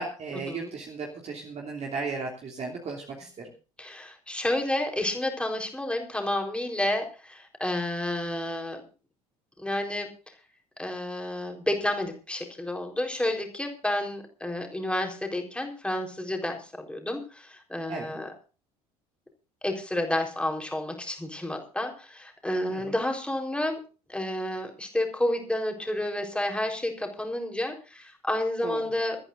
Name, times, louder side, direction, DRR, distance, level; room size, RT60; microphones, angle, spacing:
voice 1, 0.0-3.5 17.9-18.2 22.7-22.9 28.6-28.8, right 4 dB, 35° right, 0 dB, 3.0 m, -35 dB
voice 2, 3.8-8.8 9.6-10.1 10.8-18.3 19.6-23.8 24.1-29.2, left 1 dB, 5° left, 3 dB, 4.1 m, -30 dB
23.0 x 13.5 x 2.6 m, 0.34 s
figure-of-eight pair, 60°, 19 cm